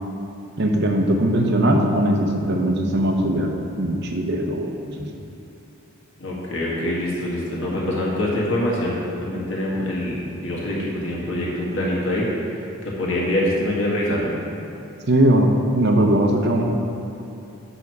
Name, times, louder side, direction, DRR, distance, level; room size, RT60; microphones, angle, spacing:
voice 1, 0.6-3.5 3.8-5.1 15.1-16.7, right 1 dB, 50° right, 2 dB, 0.8 m, -20 dB
voice 2, 6.2-14.3, left 1 dB, 55° left, -5 dB, 1.6 m, -25 dB
7.1 x 6.2 x 4.7 m, 2.8 s
head